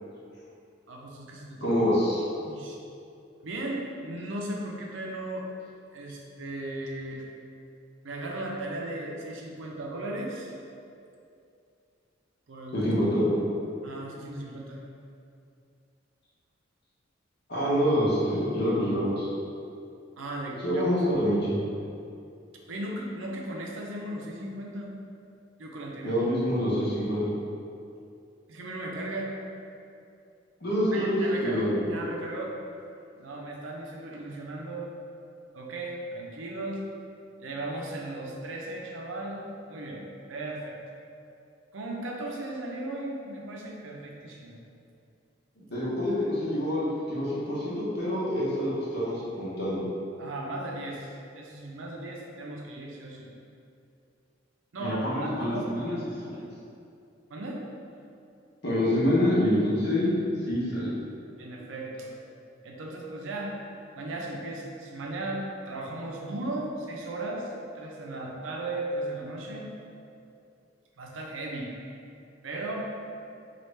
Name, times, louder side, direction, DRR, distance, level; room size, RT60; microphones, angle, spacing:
voice 1, 0.9-1.8 2.4-2.8 3.4-5.5 5.9-7.2 8.0-10.5 12.5-12.9 13.8-14.8 20.2-20.9 22.7-24.9 25.6-26.2 28.5-29.3 30.9-32.5 33.1-34.9 35.5-36.8 37.4-40.0 40.3-40.8 41.7-44.6 50.2-53.3 54.7-55.8 57.3-57.6 61.4-62.1 62.6-63.5 64.0-69.7 71.0-71.7 72.4-72.9, right 1 dB, 85° right, -1 dB, 0.5 m, -36 dB
voice 2, 1.6-2.2 12.7-13.3 17.5-19.3 20.6-21.6 26.0-27.3 30.6-31.8 45.6-49.8 54.8-56.4 58.6-60.1 60.5-60.9, equal, 60° left, -8 dB, 0.9 m, -26 dB
3.1 x 2.4 x 3.1 m, 2.5 s
head